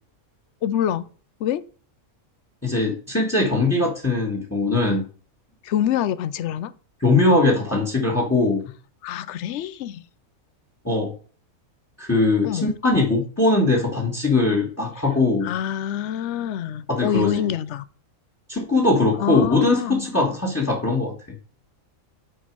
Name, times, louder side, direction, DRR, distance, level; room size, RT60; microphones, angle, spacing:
voice 1, 0.6-1.1 1.4-1.6 5.6-6.7 9.0-10.0 12.4-12.7 15.4-17.8 19.2-20.1, left 10 dB, 65° left, 0.8 m, -26 dB
voice 2, 2.6-5.1 7.0-8.6 10.8-11.1 12.0-15.5 16.9-17.4 18.5-21.1, left 2 dB, 10° left, 1.5 m, -21 dB
9.3 x 4.4 x 4.6 m
omnidirectional pair, 1.5 m